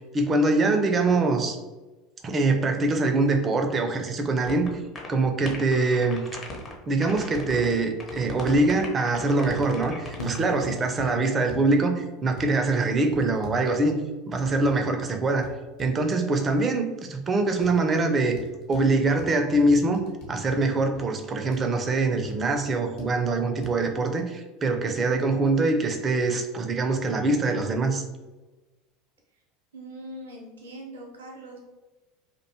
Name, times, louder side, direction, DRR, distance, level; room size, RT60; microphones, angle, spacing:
voice 1, 0.0-1.6 2.2-4.7 5.1-6.3 6.9-14.0 14.3-15.5 15.8-18.4 18.7-20.0 20.3-28.0, right 2 dB, 30° right, 5 dB, 0.4 m, -24 dB
sound 1, 4.5-4.7 5.0-5.1 5.4-6.7 7.0-7.7 8.0-10.4, left 2 dB, 25° left, 0.6 m, -38 dB
sound 2, 7.1-7.2 7.6-7.7 8.1-9.0 9.5-9.7 10.0-11.1 11.5-11.8 12.4-12.5 13.1-14.7 15.0-15.1 15.4-15.9 16.5-16.6 17.6-17.8 18.4-18.9 19.2-20.6 21.0-21.1 21.5-21.7 22.2-22.7 23.0-23.1 23.6-23.7, left 2 dB, 55° left, 0.8 m, -43 dB
Piano, 10.2-13.1, right 1 dB, 80° left, 0.4 m, -41 dB
voice 2, 29.7-31.6, right 1 dB, 75° right, 0 dB, 0.6 m, -41 dB
2.5 x 2.2 x 2.7 m, 1.2 s
figure-of-eight pair, 75°, 0 cm